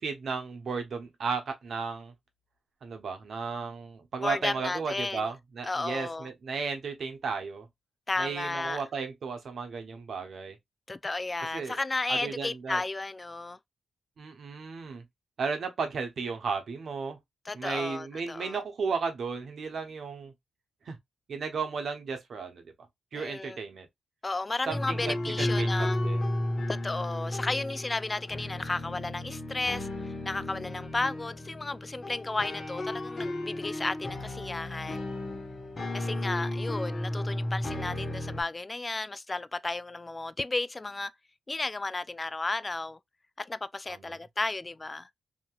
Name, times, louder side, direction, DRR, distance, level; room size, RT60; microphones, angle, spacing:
voice 1, 0.0-2.1 2.8-7.7 8.2-10.6 11.5-11.8 12.1-12.8 14.2-15.0 15.4-17.2 17.5-20.3 20.8-21.0 21.3-22.6 23.1-23.9 24.7-26.3 43.9-44.2, right 5 dB, 65° right, 0.9 m, -34 dB
voice 2, 4.2-5.3 5.6-6.3 8.1-8.8 10.9-13.6 17.5-18.6 23.1-23.6 24.2-26.0 26.7-35.0 35.9-41.1 41.5-43.0 43.4-45.1, left 2 dB, 30° left, 0.3 m, -33 dB
sound 1, 24.7-38.4, left 1 dB, 45° left, 1.1 m, -33 dB
2.9 x 2.8 x 2.3 m
supercardioid pair, 50°, 0 cm